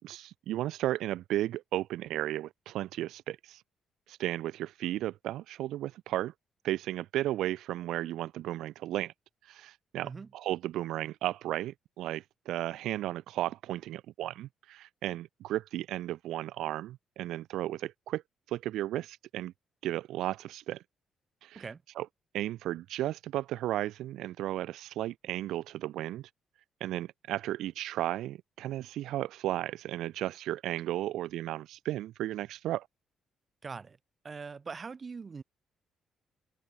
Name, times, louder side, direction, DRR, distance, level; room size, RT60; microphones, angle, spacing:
voice 1, 0.0-3.6 4.1-6.3 6.6-9.1 9.4-18.2 18.5-19.5 19.8-20.8 21.4-21.6 22.0-22.1 22.3-26.3 26.8-32.9, right 14 dB, 85° right, 3.4 m, -34 dB
voice 2, 33.6-34.0 34.2-35.4, right 5 dB, 35° right, 5.8 m, -42 dB
open air
cardioid pair, 90°, 0 cm